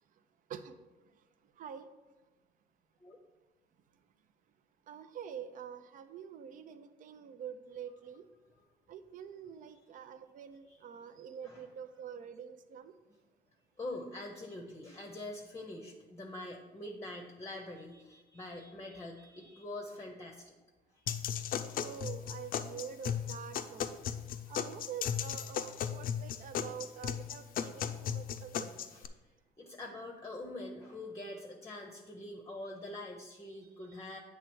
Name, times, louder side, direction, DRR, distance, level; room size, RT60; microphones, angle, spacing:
voice 1, 1.6-1.9 4.9-8.3 8.9-12.9 21.8-24.0 24.5-28.7, right 8 dB, 50° right, 10 dB, 0.6 m, -46 dB
voice 2, 13.8-20.5 21.1-21.8 28.9-29.0 29.6-34.2, left 1 dB, 20° left, 1 dB, 0.8 m, -45 dB
sound 1, 21.1-29.1, left 8 dB, 55° left, 0.5 m, -36 dB
8.1 x 3.4 x 6.2 m, 1.2 s
cardioid pair, 110°, 17 cm